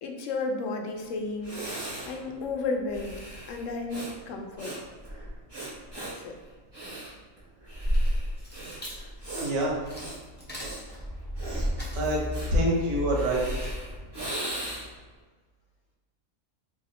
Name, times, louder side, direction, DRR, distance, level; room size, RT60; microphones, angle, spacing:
voice 1, 0.0-4.7 5.9-6.3, left 3 dB, 70° left, 3 dB, 0.9 m, -33 dB
Breathing, 1.0-1.1 1.4-15.1, right 1 dB, 20° right, 0.8 m, -35 dB
sound 1, 7.7-14.2, left 1 dB, 10° left, 0.7 m, -36 dB
voice 2, 9.4-9.8 11.9-12.2 12.5-13.7, right 1 dB, 75° right, -2 dB, 1.3 m, -26 dB
3.1 x 2.5 x 4.1 m, 1.4 s
omnidirectional pair, 1.4 m